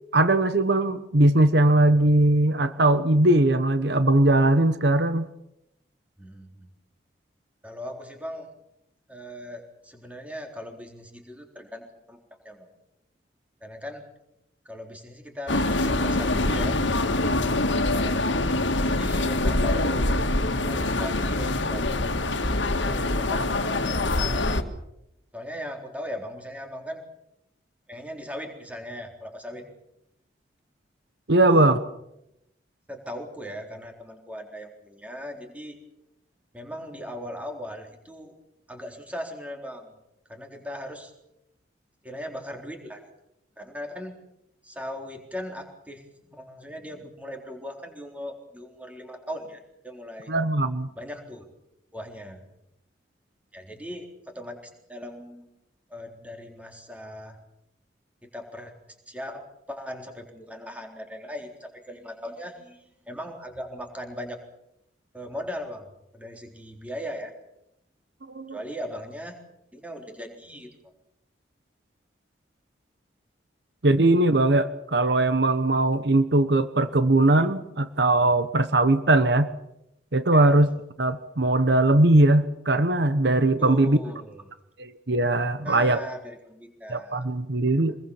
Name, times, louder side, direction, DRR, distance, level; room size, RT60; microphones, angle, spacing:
voice 1, 0.1-5.3 31.3-31.8 50.3-50.9 68.3-68.5 73.8-79.5 80.1-80.7 81.0-84.0 84.8-86.0 86.9-88.0, right 2 dB, 65° right, 11 dB, 1.1 m, -20 dB
voice 2, 6.2-6.7 7.6-8.5 9.1-12.2 12.4-12.7 13.6-14.1 14.7-16.8 17.7-20.1 20.5-22.1 22.6-24.4 25.3-27.0 27.9-29.7 31.5-31.8 32.9-35.8 36.5-38.3 38.7-39.9 40.3-41.1 42.0-43.0 43.6-44.1 44.6-50.3 51.0-51.4 51.9-52.4 53.5-55.5 55.9-57.4 58.2-58.7 59.1-64.4 65.1-67.3 68.5-69.4 69.7-70.9 80.3-80.5 83.6-84.5 85.6-87.2 87.7-87.8, equal, 10° right, 2 dB, 3.8 m, -39 dB
sound 1, 15.5-24.6, left 2 dB, 85° left, 2.0 m, -24 dB
25.0 x 21.0 x 7.2 m, 0.84 s
head